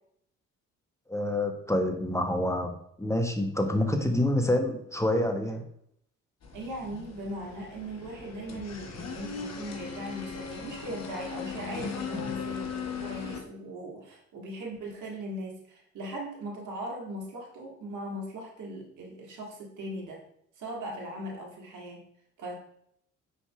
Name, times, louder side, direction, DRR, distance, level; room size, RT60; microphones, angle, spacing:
voice 1, 1.1-2.7 3.0-5.6, left 1 dB, 10° left, 4 dB, 0.7 m, -27 dB
sound 1, 6.4-13.4, left 6 dB, 45° left, 0.8 m, -38 dB
voice 2, 6.5-20.2 20.5-22.0 22.4-22.5, right 1 dB, 55° right, -2 dB, 1.5 m, -39 dB
5.2 x 3.3 x 2.3 m, 0.69 s
hypercardioid pair, 50°, 36 cm